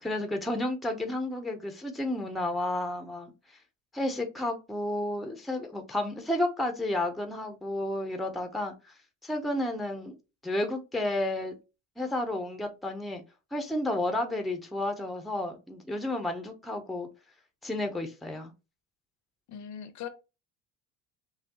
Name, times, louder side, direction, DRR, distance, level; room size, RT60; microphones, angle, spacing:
voice 1, 0.0-3.6 3.9-8.9 9.2-10.1 10.4-11.6 12.0-13.2 13.5-17.1 17.6-18.5, left 1 dB, ahead, 0.6 m, -31 dB
voice 2, 19.5-20.1, left 8 dB, 50° left, 0.7 m, -40 dB
5.6 x 2.3 x 2.9 m
cardioid pair, 120°, 36 cm